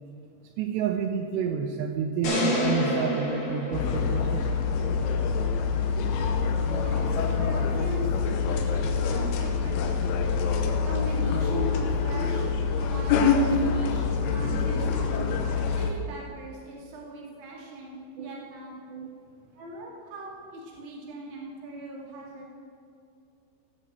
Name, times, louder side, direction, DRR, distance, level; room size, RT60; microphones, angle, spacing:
voice 1, 0.6-4.5 18.2-18.3 18.9-19.1, right 8 dB, 90° right, 5 dB, 2.4 m, -30 dB
sound 1, 2.2-4.5, left 1 dB, 45° left, 4.3 m, -28 dB
sound 2, 3.7-15.9, left 5 dB, 80° left, 3.4 m, -25 dB
voice 2, 6.7-10.1 10.6-15.3 15.7-18.7 19.5-22.5, right 2 dB, 40° right, -3 dB, 1.9 m, -40 dB
15.5 x 6.3 x 7.5 m, 2.5 s
omnidirectional pair, 5.7 m